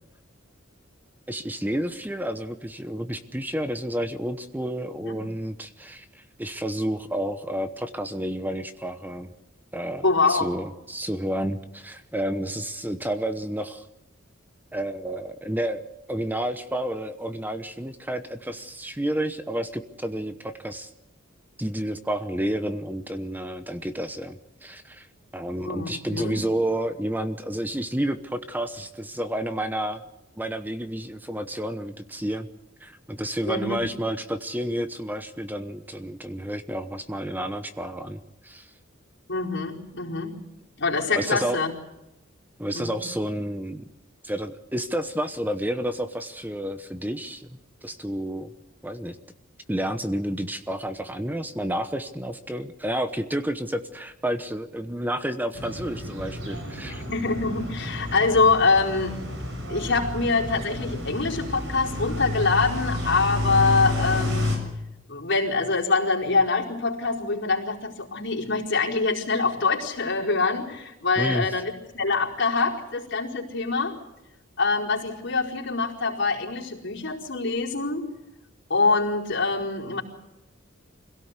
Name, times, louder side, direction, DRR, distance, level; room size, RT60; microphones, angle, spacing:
voice 1, 1.3-6.0 6.4-9.3 9.7-13.8 14.7-20.9 21.6-25.1 25.3-30.0 30.4-32.5 32.8-38.7 41.1-41.6 42.6-43.8 44.2-47.5 47.8-48.5 48.8-49.2 49.7-57.0 71.2-71.5, right 1 dB, 10° right, 9 dB, 1.0 m, -30 dB
voice 2, 10.0-10.5 25.6-26.4 33.5-33.9 39.3-40.4 40.8-41.7 42.7-43.0 57.0-59.2 59.7-64.6 65.1-73.9 74.6-78.0 78.7-80.0, left 3 dB, 60° left, -2 dB, 4.6 m, -24 dB
sound 1, 55.5-64.6, left 1 dB, 70° right, 7.0 m, -30 dB
25.5 x 17.0 x 8.2 m, 0.92 s
head